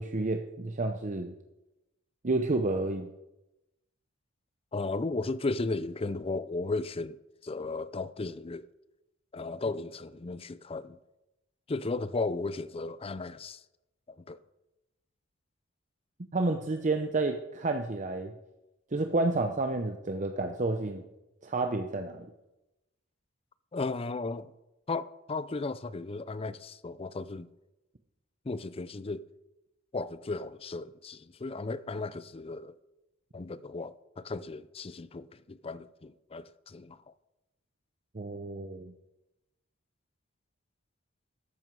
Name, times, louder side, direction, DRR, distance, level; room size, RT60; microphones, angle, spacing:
voice 1, 0.0-1.3 2.2-3.1 16.3-18.3 18.9-21.0 21.4-22.3 38.1-38.9, right 2 dB, 40° right, 0.7 m, -30 dB
voice 2, 4.7-8.7 9.3-11.0 11.7-13.6 14.3-14.4 23.7-24.5 24.9-27.5 28.4-29.3 29.9-32.8 33.3-37.0, left 3 dB, 30° left, 0.5 m, -35 dB
13.5 x 11.0 x 4.7 m
head